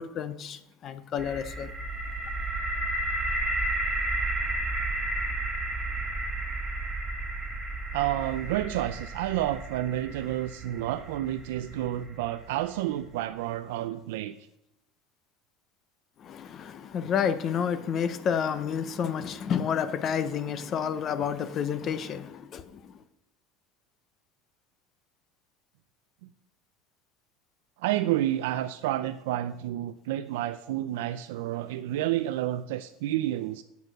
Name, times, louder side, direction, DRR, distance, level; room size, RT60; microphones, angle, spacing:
voice 1, 0.0-1.7 16.3-22.6, left 7 dB, 30° left, 0.6 m, -30 dB
sound 1, 1.2-13.0, right 2 dB, 15° right, 1.7 m, -33 dB
voice 2, 7.9-14.4 27.8-33.6, right 13 dB, 90° right, 0.4 m, -30 dB
8.2 x 6.7 x 6.0 m
cardioid pair, 160°, 0 cm